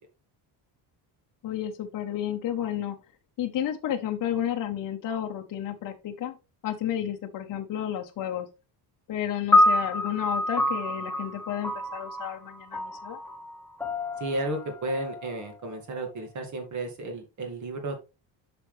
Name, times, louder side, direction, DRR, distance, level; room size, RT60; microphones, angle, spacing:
voice 1, 1.4-3.0 3.4-6.3 6.6-8.5 9.1-13.2, left 10 dB, 45° left, 3 dB, 0.9 m, -31 dB
sound 1, 9.5-16.0, left 2 dB, 5° left, 0.7 m, -27 dB
voice 2, 14.2-18.0, right 2 dB, 40° right, 5 dB, 2.1 m, -33 dB
8.1 x 6.1 x 3.2 m, 0.28 s
cardioid pair, 175°, 46 cm